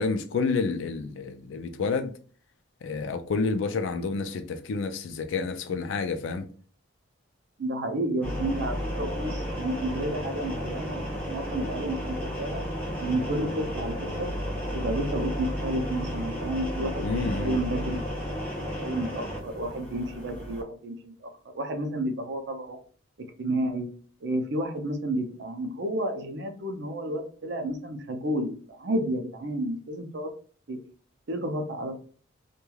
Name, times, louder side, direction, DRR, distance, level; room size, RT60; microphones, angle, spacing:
voice 1, 0.0-2.1 2.8-6.5 17.0-17.6, left 4 dB, 65° left, 0.3 m, -29 dB
voice 2, 7.6-12.6 13.0-14.3 14.7-18.5 18.8-22.8 23.4-23.9 24.2-30.3 30.7-30.8 31.3-32.0, right 1 dB, 55° right, 0.5 m, -31 dB
sound 1, 8.2-20.6, equal, 10° left, 0.8 m, -33 dB
3.1 x 2.2 x 2.2 m
head